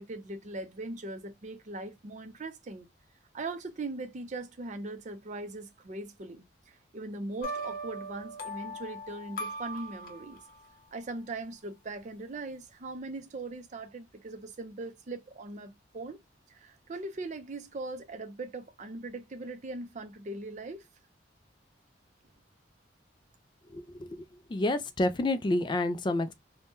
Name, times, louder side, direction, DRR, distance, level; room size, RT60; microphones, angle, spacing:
voice 1, 0.0-2.9 3.3-10.4 10.9-16.2 16.5-20.8, right 2 dB, 40° right, 0.5 m, -40 dB
sound 1, 7.4-10.6, right 1 dB, 50° left, 0.7 m, -39 dB
voice 2, 23.7-24.2 24.5-26.3, left 1 dB, 25° left, 0.3 m, -29 dB
2.7 x 2.1 x 3.4 m
head